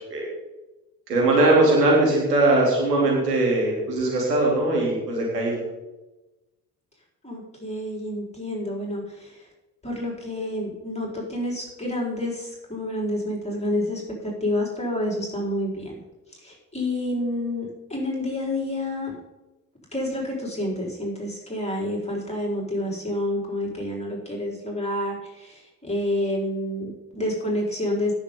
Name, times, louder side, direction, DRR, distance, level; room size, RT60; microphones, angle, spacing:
voice 1, 1.1-5.6, right 2 dB, 85° right, -2 dB, 3.1 m, -20 dB
voice 2, 7.2-9.5 9.8-15.9 16.4-19.2 19.9-28.1, left 1 dB, 15° left, -2 dB, 4.5 m, -29 dB
17.5 x 7.2 x 3.8 m, 1.1 s
figure-of-eight pair, 45°, 47 cm